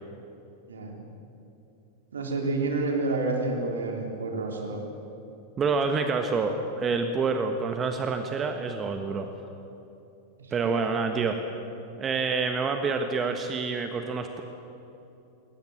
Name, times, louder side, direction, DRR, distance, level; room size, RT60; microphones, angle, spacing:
voice 1, 0.7-1.0 2.1-4.8 10.4-11.1, right 3 dB, 70° right, 1 dB, 3.6 m, -29 dB
voice 2, 5.6-9.3 10.5-11.4 12.0-14.4, right 4 dB, 25° right, 6 dB, 1.4 m, -27 dB
21.0 x 19.0 x 8.0 m, 2.9 s
figure-of-eight pair, 90°, 0 cm